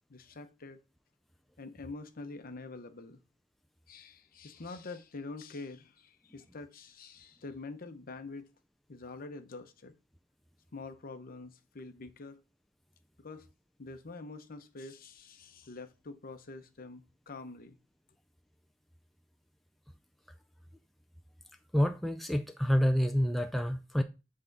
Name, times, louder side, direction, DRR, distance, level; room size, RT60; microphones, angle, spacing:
voice 1, 0.1-0.8 1.6-3.2 3.9-8.5 8.9-9.9 10.7-12.4 13.2-13.5 13.8-17.8, left 3 dB, 50° left, 0.7 m, -46 dB
voice 2, 21.7-24.0, equal, ahead, 0.3 m, -28 dB
7.9 x 3.7 x 3.9 m
head